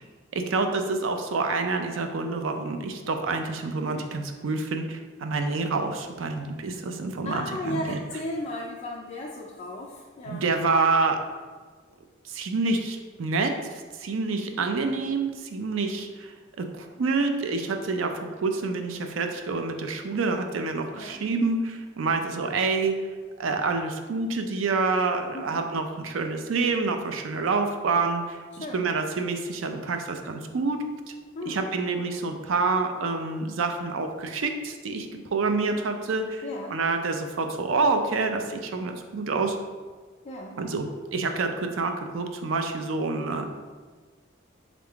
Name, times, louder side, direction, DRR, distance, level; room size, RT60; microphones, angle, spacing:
voice 1, 0.3-8.0 10.3-11.2 12.2-23.0 23.4-30.8 31.5-36.4 36.7-39.6 40.6-43.5, right 3 dB, 80° right, 6 dB, 0.5 m, -27 dB
voice 2, 7.2-10.5 20.9-21.2 25.3-25.6 28.5-28.9 31.3-31.6 36.4-36.8 40.2-40.6, left 1 dB, 35° left, -2 dB, 0.4 m, -35 dB
3.7 x 3.7 x 3.4 m, 1.5 s
head